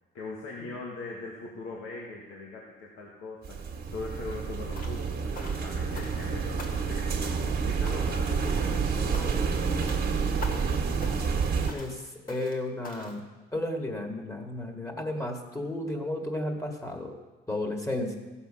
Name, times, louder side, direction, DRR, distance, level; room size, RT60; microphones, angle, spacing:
voice 1, 0.1-3.6 3.9-7.1 7.7-9.8 10.1-10.9, left 3 dB, 85° left, -3 dB, 1.9 m, -41 dB
sound 1, 3.4-11.7, right 5 dB, 50° right, 1.6 m, -29 dB
sound 2, 4.7-5.1 5.3-6.3 6.6-7.0 7.2-7.6 7.9-8.2 8.5-8.8 9.1-9.5 9.8-10.1 10.4-10.7 11.0-11.4 11.7-12.0 12.3-12.6 12.8-13.2, left 3 dB, 45° left, 1.8 m, -45 dB
voice 2, 11.7-12.0 12.3-17.1 17.5-18.2, left 1 dB, 15° left, 2 dB, 2.0 m, -33 dB
14.5 x 7.1 x 5.7 m, 1.2 s
cardioid pair, 90°, 20 cm